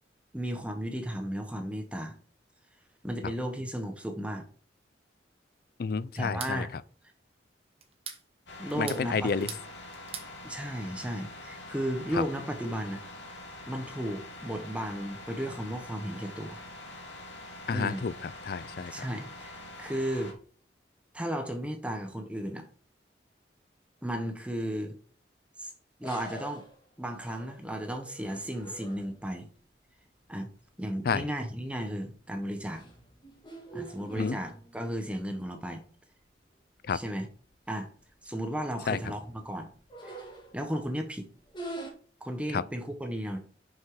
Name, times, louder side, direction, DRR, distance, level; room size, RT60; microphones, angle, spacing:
voice 1, 0.3-2.1 3.0-4.5 6.2-6.7 8.6-9.5 10.4-13.0 13.7-16.6 17.7-18.0 18.9-20.3 21.1-22.7 24.0-25.0 25.6-25.7 26.0-26.6 27.0-29.5 30.3-30.5 30.8-32.8 33.7-35.8 36.9-37.3 37.7-37.9 38.2-39.7 40.0-40.2 40.5-41.3 42.2-43.4, equal, 5° right, 0.8 m, -34 dB
voice 2, 5.8-6.8 8.7-9.5 12.1-12.2 17.7-18.9 31.0-31.3 34.2-34.4 36.8-37.0 38.9-39.0 42.5-42.6, left 5 dB, 55° left, 0.4 m, -30 dB
sound 1, 6.2-6.6 7.8-8.2 8.7-9.7 9.9-10.3, right 7 dB, 30° right, 1.2 m, -41 dB
sound 2, 8.5-20.3, left 2 dB, 80° left, 2.1 m, -45 dB
sound 3, 26.0-29.3 31.0-31.3 31.7-32.0 32.5-35.0 35.4-35.5 35.8-35.9 36.8-36.9 37.2-37.3 37.7-38.0 38.6-40.8 41.5-41.9, right 1 dB, 25° left, 1.6 m, -45 dB
6.0 x 5.8 x 4.6 m
head